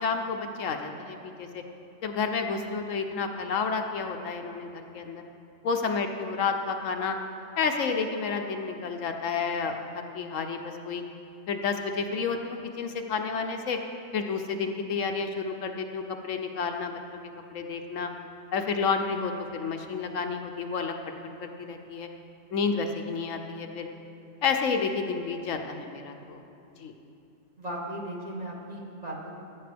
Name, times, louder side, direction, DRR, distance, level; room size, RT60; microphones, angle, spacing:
voice 1, 0.0-1.6 2.0-5.2 5.6-7.2 7.6-11.0 11.5-13.8 14.1-17.0 17.5-18.1 18.5-20.9 21.4-22.1 22.5-23.9 24.4-26.4 26.8-26.9, left 5 dB, 70° left, 5 dB, 1.0 m, -30 dB
voice 2, 27.6-29.4, right 1 dB, 30° right, -3 dB, 1.4 m, -37 dB
16.0 x 8.7 x 3.4 m, 2.7 s
omnidirectional pair, 1.4 m